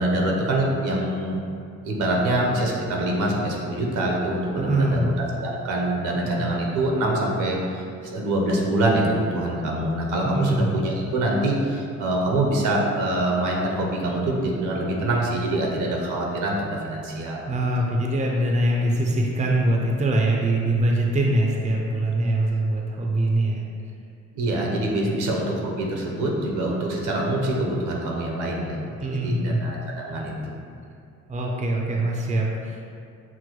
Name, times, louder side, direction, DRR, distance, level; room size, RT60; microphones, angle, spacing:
voice 1, 0.0-1.4 1.8-5.1 5.4-17.4 24.3-30.6, right 1 dB, 80° right, -1 dB, 0.8 m, -25 dB
voice 2, 4.6-5.1 6.2-6.5 10.2-10.8 17.5-23.6 25.0-25.2 29.0-29.6 31.3-32.8, right 1 dB, 25° right, -1 dB, 0.5 m, -23 dB
6.0 x 2.1 x 3.0 m, 2.5 s
cardioid pair, 90°, 30 cm